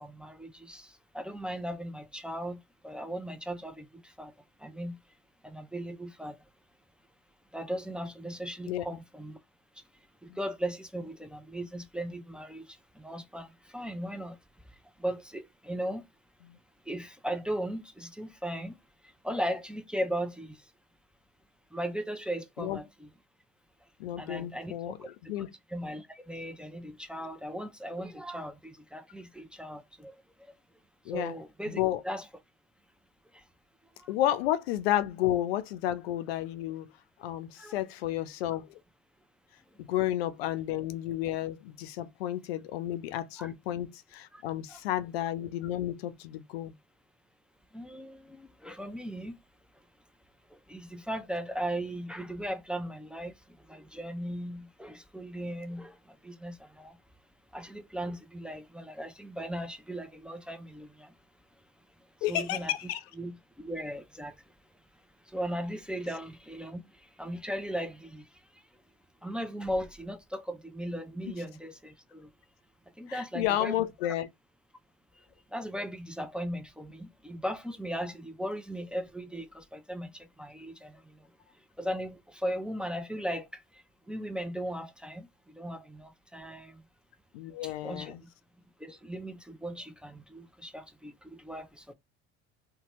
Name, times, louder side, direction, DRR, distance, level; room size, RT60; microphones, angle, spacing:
voice 1, 0.0-4.3 4.6-5.0 5.4-6.4 7.5-9.4 10.2-14.4 14.7-16.0 16.9-18.8 19.0-20.7 21.7-23.1 24.2-24.7 25.0-25.3 25.7-30.5 31.1-32.3 33.3-33.4 34.0-34.1 37.6-37.9 43.4-43.5 44.3-44.4 44.7-44.8 47.7-49.4 50.5-57.0 57.5-61.1 62.3-62.7 63.2-64.4 65.3-68.6 69.2-72.3 73.0-73.8 75.5-81.3 81.8-86.8 87.6-88.3 88.8-91.9, equal, 5° right, 0.4 m, -38 dB
voice 2, 24.0-25.0 25.3-25.5 31.1-31.3 31.7-32.0 34.1-36.9 37.2-38.8 39.8-46.7 62.2-63.0 73.1-74.3 87.3-88.2, left 13 dB, 85° left, 0.5 m, -31 dB
2.7 x 2.2 x 3.0 m
hypercardioid pair, 75°, 30 cm